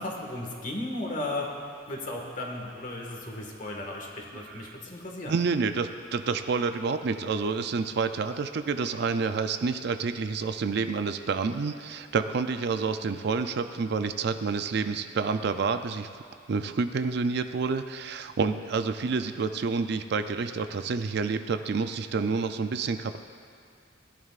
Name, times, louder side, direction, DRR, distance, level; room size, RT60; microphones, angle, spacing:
voice 1, 0.0-1.5 1.9-5.3, left 1 dB, 45° left, 0 dB, 1.6 m, -35 dB
voice 2, 4.3-4.8 5.3-16.1 16.5-23.2, right 4 dB, 60° right, 9 dB, 0.4 m, -29 dB
18.0 x 11.0 x 2.4 m, 2.2 s
head